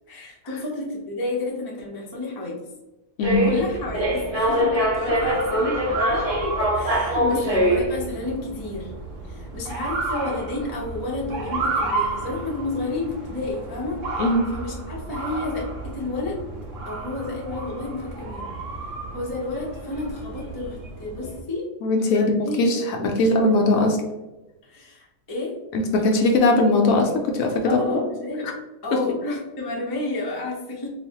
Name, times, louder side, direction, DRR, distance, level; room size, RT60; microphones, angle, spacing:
voice 1, 0.1-2.6 3.4-8.9 9.3-14.2 14.5-16.5 16.8-18.6 19.1-22.9 23.2-23.3 24.6-25.6 27.6-28.6 28.8-30.9, left 2 dB, 30° left, -3 dB, 0.4 m, -31 dB
sound 1, 3.2-21.4, equal, 30° right, 0.8 m, -27 dB
Motor vehicle (road) / Siren, 5.1-20.7, right 3 dB, 60° right, 1.0 m, -33 dB
voice 2, 14.2-14.5 21.8-24.0 25.7-28.0, left 2 dB, 70° left, 2 dB, 0.9 m, -20 dB
3.9 x 2.1 x 2.8 m, 1.0 s
omnidirectional pair, 1.6 m